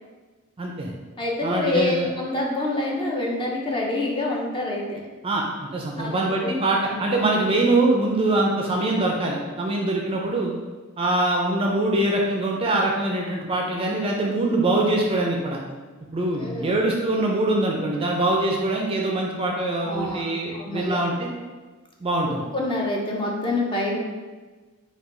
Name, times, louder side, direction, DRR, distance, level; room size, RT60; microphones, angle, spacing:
voice 1, 0.6-0.9 1.4-2.1 5.2-5.4 5.7-10.5 11.0-15.6 16.1-21.3 22.0-22.4, right 2 dB, 25° right, -1 dB, 0.4 m, -23 dB
voice 2, 1.2-5.0 6.0-6.1 6.4-6.5 6.9-7.0 16.4-16.8 19.8-21.0 22.5-24.0, left 2 dB, 20° left, -2 dB, 0.6 m, -27 dB
4.8 x 2.3 x 3.7 m, 1.3 s
head